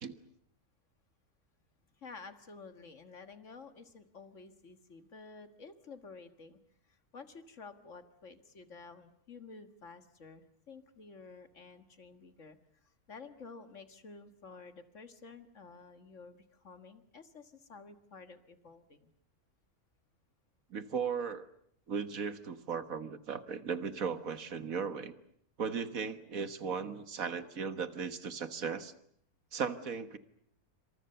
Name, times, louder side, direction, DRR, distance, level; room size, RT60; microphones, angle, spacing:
voice 1, 2.0-6.6 6.8-19.1, left 4 dB, 55° left, 9 dB, 2.0 m, -52 dB
voice 2, 20.7-21.5 21.9-25.1 25.6-28.9 29.5-30.2, right 6 dB, 65° right, 11 dB, 1.8 m, -37 dB
27.5 x 26.0 x 6.8 m, 0.67 s
omnidirectional pair, 1.6 m